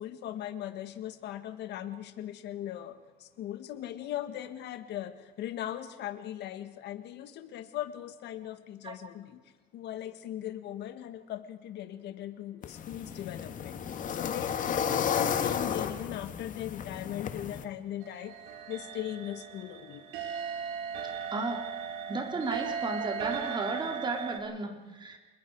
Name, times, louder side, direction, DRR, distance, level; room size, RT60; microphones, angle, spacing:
voice 1, 0.0-9.4 9.7-20.1 20.4-21.2, left 12 dB, 60° left, 9 dB, 1.8 m, -39 dB
sound 1, 12.6-17.6, left 8 dB, 40° left, 1.6 m, -33 dB
sound 2, 18.0-24.4, right 7 dB, 80° right, 3.5 m, -37 dB
voice 2, 21.3-21.6 22.1-25.2, right 3 dB, 25° right, 4 dB, 3.4 m, -34 dB
27.0 x 21.0 x 4.8 m, 1.2 s
cardioid pair, 125°, 20 cm